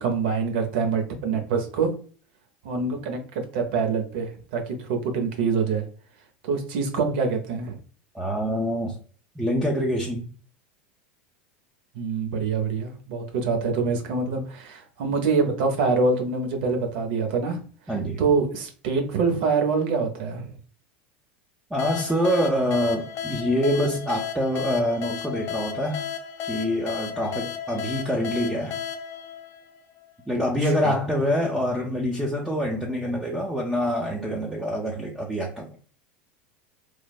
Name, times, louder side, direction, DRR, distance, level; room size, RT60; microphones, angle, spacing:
voice 1, 0.0-2.0 2.6-5.8 6.4-7.8 11.9-17.6 18.2-20.5 30.6-30.9, right 4 dB, 65° right, 4 dB, 0.7 m, -25 dB
voice 2, 8.1-9.0 9.4-10.3 17.9-18.2 21.7-26.1 26.5-28.8 30.3-35.7, equal, 10° right, -1 dB, 0.5 m, -25 dB
sound 1, 21.8-30.2, left 8 dB, 50° left, 0.4 m, -34 dB
3.1 x 2.1 x 2.3 m, 0.41 s
hypercardioid pair, 85°, 6 cm